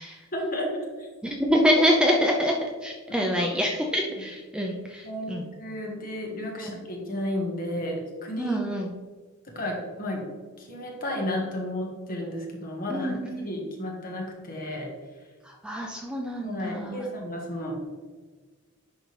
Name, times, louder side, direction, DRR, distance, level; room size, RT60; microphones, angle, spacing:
voice 1, 0.3-1.1 3.3-3.5 5.0-8.6 9.5-10.3 10.6-14.9 16.4-17.8, left 1 dB, 40° left, 0 dB, 1.5 m, -33 dB
voice 2, 1.2-5.5 6.6-6.8 8.4-8.9 12.9-13.5 15.4-17.1, equal, 5° right, -1 dB, 0.5 m, -26 dB
10.5 x 3.9 x 3.3 m, 1.4 s
head